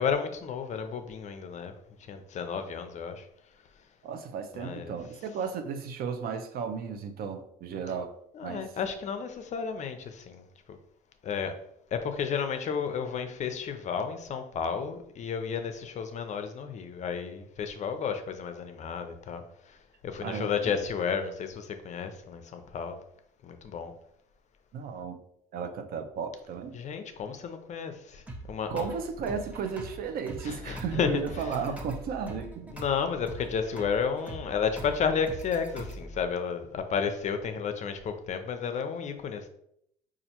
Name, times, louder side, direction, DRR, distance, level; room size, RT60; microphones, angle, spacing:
voice 1, 0.0-1.7 2.1-3.3 4.5-4.9 8.3-10.8 11.2-11.5 11.9-19.4 19.7-19.8 20.0-23.0 23.4-23.9 26.7-28.9 30.5-31.2 32.7-39.5, left 6 dB, 45° left, 8 dB, 0.5 m, -32 dB
voice 2, 4.0-8.1 8.4-8.7 20.2-20.8 24.7-25.2 25.5-26.7 28.7-32.8, right 6 dB, 60° right, 7 dB, 0.5 m, -34 dB
sound 1, 28.3-36.3, right 1 dB, 10° right, 0.5 m, -42 dB
4.2 x 2.4 x 2.8 m, 0.73 s
cardioid pair, 110°, 17 cm